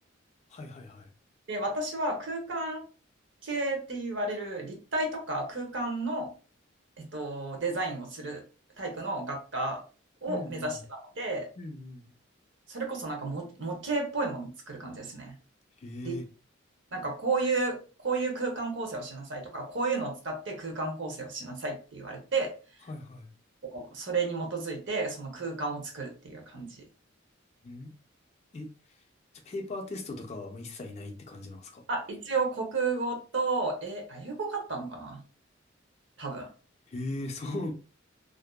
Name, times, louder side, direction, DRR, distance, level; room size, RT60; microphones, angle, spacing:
voice 1, 0.5-1.1 10.3-10.8 11.6-12.1 15.8-16.2 22.9-23.3 27.6-27.9 28.5-28.7 29.5-31.8 36.9-37.7, left 2 dB, 35° left, 3 dB, 0.4 m, -38 dB
voice 2, 1.5-2.9 3.4-6.3 7.0-8.4 8.8-9.8 10.2-10.8 11.2-11.5 12.7-15.3 16.0-16.2 16.9-17.8 18.0-22.5 23.7-26.8 31.9-35.2 36.2-36.5, right 3 dB, 65° right, 2 dB, 0.8 m, -32 dB
2.6 x 2.2 x 2.2 m, 0.36 s
head